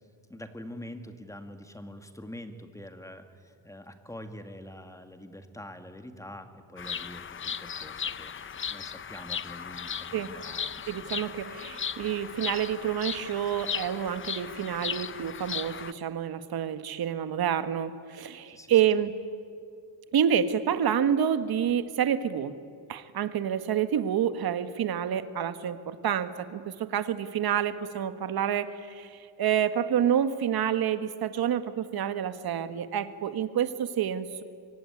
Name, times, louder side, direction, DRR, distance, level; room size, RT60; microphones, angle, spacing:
voice 1, 0.3-11.2 18.5-18.8, left 1 dB, 5° left, 7 dB, 2.0 m, -45 dB
Bird vocalization bird call bird song, 6.8-15.9, left 7 dB, 30° left, 0.7 m, -36 dB
voice 2, 10.9-19.1 20.1-22.6 22.9-34.4, right 9 dB, 55° right, 11 dB, 1.6 m, -28 dB
24.5 x 24.0 x 9.8 m, 2.3 s
cardioid pair, 130°, 44 cm